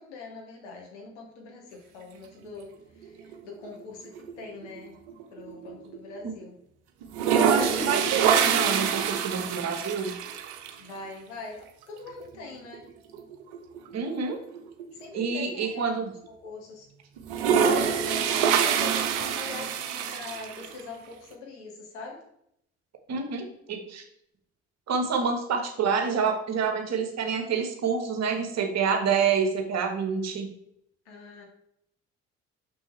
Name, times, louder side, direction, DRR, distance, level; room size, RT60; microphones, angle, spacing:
voice 1, 0.0-4.9 5.3-6.6 7.5-7.7 10.8-12.8 15.0-15.9 16.3-16.9 17.6-22.2 31.1-31.4, left 3 dB, 75° left, -1 dB, 1.7 m, -42 dB
sound 1, 3.0-3.8 4.2-6.2 6.4-6.5 7.0-10.7 12.2-12.3 12.7-12.8 13.1-15.5 16.0-16.1 17.2-20.8, right 7 dB, 70° right, 0.8 m, -26 dB
voice 2, 7.3-10.1 13.9-14.4 15.1-16.1 23.1-24.0 24.9-30.5, right 5 dB, 50° right, 4 dB, 1.5 m, -27 dB
6.4 x 6.0 x 3.3 m, 0.74 s
figure-of-eight pair, 45°, 35 cm